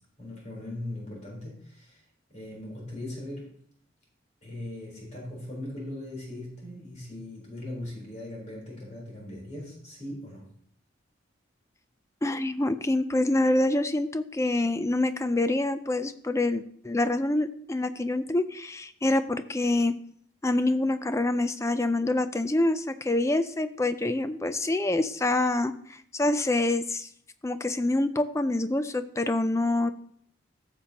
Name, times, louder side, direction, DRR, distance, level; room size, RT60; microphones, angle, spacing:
voice 1, 0.2-2.0 2.3-3.5 4.4-10.5, left 1 dB, 35° left, -3 dB, 3.9 m, -39 dB
voice 2, 12.2-19.9 20.4-27.1 27.4-29.9, left 2 dB, 15° left, 11 dB, 0.4 m, -26 dB
14.5 x 6.9 x 2.9 m, 0.62 s
head